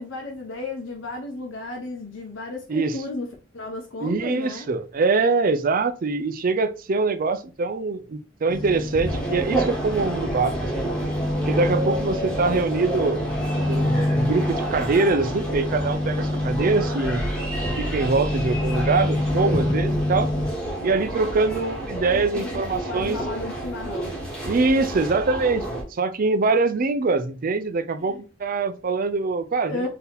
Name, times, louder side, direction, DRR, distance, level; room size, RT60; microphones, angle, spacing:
voice 1, 0.0-3.3 3.5-4.7 22.1-24.1 28.0-28.2 29.7-29.9, left 2 dB, 75° left, 1.0 m, -33 dB
voice 2, 4.0-10.7 11.5-13.2 13.6-17.3 17.8-20.3 20.8-23.2 24.5-25.7 25.9-29.9, right 3 dB, 45° right, 0.5 m, -23 dB
sound 1, 8.5-20.5, left 1 dB, 20° left, 0.5 m, -27 dB
sound 2, 9.1-25.8, right 1 dB, 5° left, 1.4 m, -30 dB
4.0 x 2.8 x 4.0 m
head